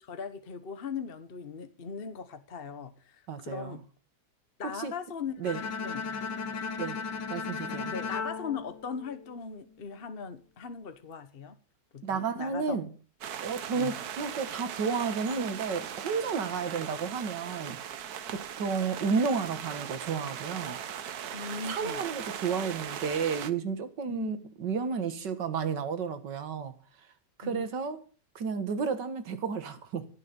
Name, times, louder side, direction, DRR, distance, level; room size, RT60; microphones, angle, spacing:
voice 1, 0.0-3.9 4.6-5.5 5.8-6.1 7.3-11.6 11.9-12.8 13.7-14.0 21.3-22.0 24.1-24.4 27.4-27.7, left 5 dB, 40° left, 1.1 m, -39 dB
voice 2, 3.3-3.8 4.8-4.9 5.4-5.6 6.8-7.0 7.3-7.9 12.0-12.9 13.4-17.8 18.3-20.8 21.7-26.7 27.4-28.0 28.4-30.1, right 5 dB, 90° right, 2.2 m, -32 dB
Bowed string instrument, 5.4-9.6, left 5 dB, 90° left, 1.7 m, -36 dB
sound 1, 13.2-23.5, right 9 dB, 65° right, 1.4 m, -39 dB
16.5 x 6.5 x 8.1 m
omnidirectional pair, 1.8 m